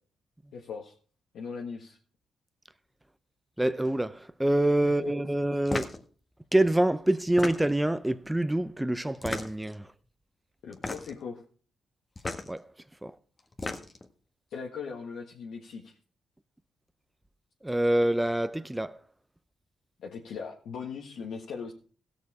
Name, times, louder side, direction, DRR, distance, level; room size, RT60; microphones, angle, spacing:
voice 1, 0.5-0.9 1.3-2.0 4.8-4.9 10.6-11.4 14.5-16.0 20.0-21.7, left 5 dB, 75° left, 1.6 m, -39 dB
voice 2, 3.6-5.9 6.5-9.9 12.5-12.6 13.0-13.1 17.6-19.0, right 1 dB, 10° right, 0.7 m, -26 dB
sound 1, 5.7-6.0 7.2-7.9 9.1-9.7 10.7-11.2 12.2-12.5 13.4-14.1, left 2 dB, 30° left, 1.5 m, -34 dB
16.0 x 6.7 x 4.8 m
cardioid pair, 65°, 0 cm